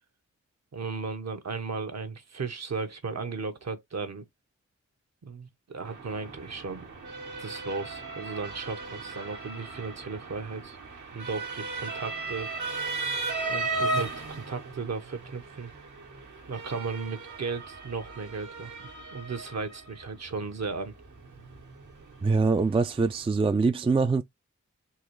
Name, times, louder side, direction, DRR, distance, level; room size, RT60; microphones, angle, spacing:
voice 1, 0.7-4.3 5.2-6.9 7.4-10.8 11.1-12.5 13.5-15.7 16.5-18.8 19.1-20.9, right 4 dB, 60° right, 0.9 m, -35 dB
Motor vehicle (road) / Siren, 5.8-23.2, right 3 dB, 80° right, 1.2 m, -37 dB
voice 2, 22.2-24.2, right 4 dB, 20° right, 0.4 m, -24 dB
3.8 x 2.4 x 3.1 m
wide cardioid pair, 55°, 30 cm